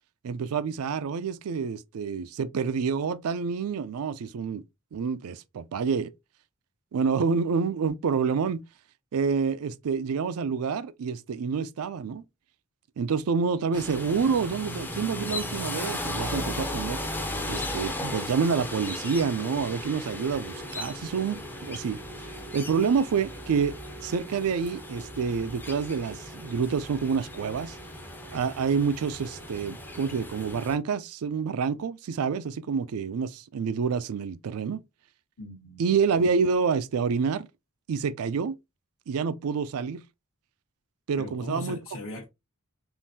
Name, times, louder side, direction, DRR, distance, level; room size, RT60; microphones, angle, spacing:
voice 1, 0.2-4.6 4.9-6.1 6.9-8.6 9.1-12.2 13.0-17.0 17.5-22.0 22.5-23.7 24.0-27.8 28.3-34.8 35.8-37.5 37.9-38.6 39.1-40.0 41.1-41.8, right 5 dB, 70° right, 0.4 m, -28 dB
sound 1, 13.7-30.8, left 1 dB, 10° left, 0.5 m, -36 dB
voice 2, 35.4-35.9 41.2-42.3, left 2 dB, 60° left, 0.9 m, -39 dB
3.7 x 2.6 x 2.6 m
head